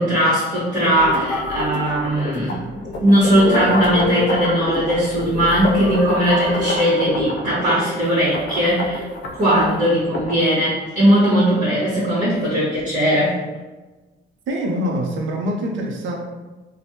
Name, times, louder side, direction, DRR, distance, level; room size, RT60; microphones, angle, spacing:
voice 1, 0.0-9.0 9.3-13.4, equal, 40° right, -9 dB, 1.1 m, -19 dB
sound 1, 0.8-10.4, left 2 dB, 60° left, 0.5 m, -26 dB
voice 2, 14.5-16.1, equal, 75° right, 0 dB, 0.6 m, -24 dB
3.3 x 2.1 x 2.7 m, 1.2 s
cardioid pair, 90°, 20 cm